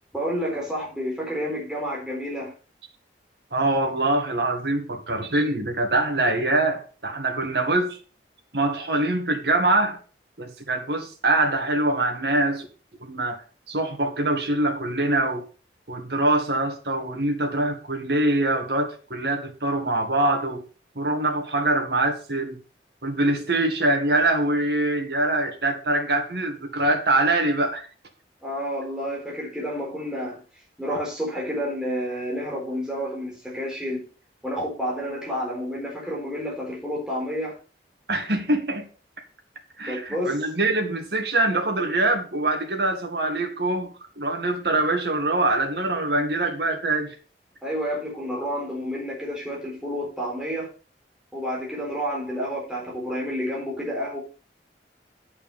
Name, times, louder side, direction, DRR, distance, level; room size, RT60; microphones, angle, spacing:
voice 1, 0.1-2.5 28.4-30.4 30.8-34.0 34.4-37.6 39.8-40.3 47.6-50.7 51.3-54.2, equal, 5° right, 4.1 m, -30 dB
voice 2, 3.5-8.0 8.5-10.0 10.4-12.7 13.0-15.5 15.9-20.6 21.0-22.6 23.0-27.9 38.1-38.9 39.8-47.1, right 2 dB, 65° right, 2.1 m, -24 dB
8.3 x 7.4 x 5.6 m
head